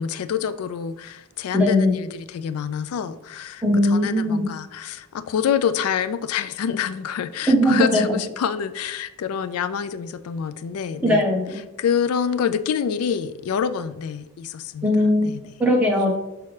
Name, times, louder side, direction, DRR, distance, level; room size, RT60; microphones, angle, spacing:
voice 1, 0.0-11.3 11.8-14.9 15.2-15.4, left 7 dB, 85° left, 13 dB, 0.3 m, -27 dB
voice 2, 1.5-1.9 3.6-4.5 7.5-8.2 11.0-11.6 14.8-15.3 15.6-16.2, left 1 dB, 5° right, -2 dB, 1.0 m, -19 dB
6.1 x 5.7 x 3.2 m, 1.0 s
head